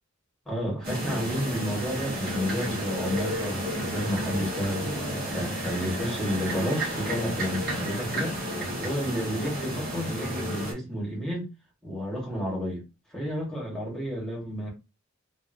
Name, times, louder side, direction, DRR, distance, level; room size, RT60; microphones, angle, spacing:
voice 1, 0.4-8.3 8.8-11.5 11.8-12.8 13.1-14.7, equal, 5° left, -3 dB, 1.3 m, -31 dB
sound 1, 0.8-10.7, equal, 50° right, 1.1 m, -32 dB
2.9 x 2.4 x 2.5 m, 0.28 s
head